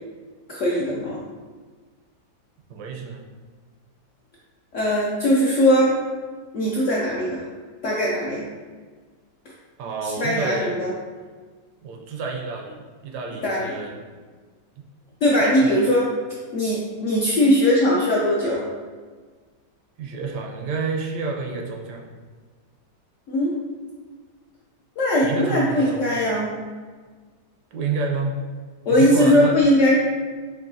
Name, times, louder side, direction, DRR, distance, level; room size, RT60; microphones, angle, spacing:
voice 1, 0.5-1.2 4.7-6.0 6.5-7.4 7.8-8.5 10.0-10.9 13.4-13.6 15.2-16.0 16.5-18.7 23.3-23.5 25.0-26.5 28.9-29.9, left 1 dB, 75° left, -5 dB, 0.7 m, -20 dB
voice 2, 2.7-3.2 9.8-10.8 11.8-14.0 14.8-14.9 15.4-15.7 20.0-22.1 25.2-26.1 27.7-28.4 28.9-29.6, right 4 dB, 75° right, 1 dB, 1.1 m, -29 dB
4.7 x 2.6 x 2.6 m, 1.5 s
omnidirectional pair, 1.8 m